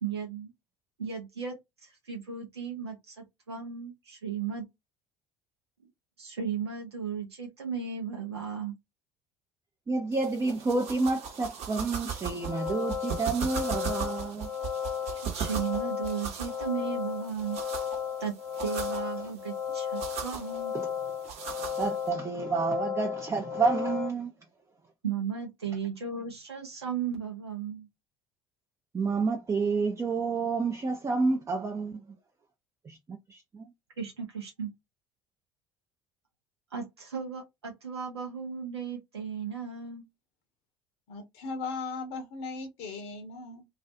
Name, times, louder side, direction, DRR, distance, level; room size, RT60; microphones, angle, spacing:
voice 1, 0.0-0.5 1.0-1.6 1.8-4.6 6.2-8.7 15.2-17.6 18.2-18.3 18.6-20.7 25.0-27.9 34.0-34.7 36.7-40.1, right 7 dB, 85° right, 0.6 m, -35 dB
voice 2, 9.9-14.5 19.2-19.3 20.7-20.9 21.8-24.3 28.9-32.0 32.8-33.7, right 4 dB, 20° right, 0.5 m, -29 dB
sound 1, 10.1-22.1, right 7 dB, 55° right, 0.9 m, -39 dB
sound 2, 12.3-24.1, left 8 dB, 85° left, 1.0 m, -35 dB
voice 3, 41.1-43.7, left 4 dB, 60° left, 0.7 m, -37 dB
2.4 x 2.3 x 2.6 m
figure-of-eight pair, 65°, 13 cm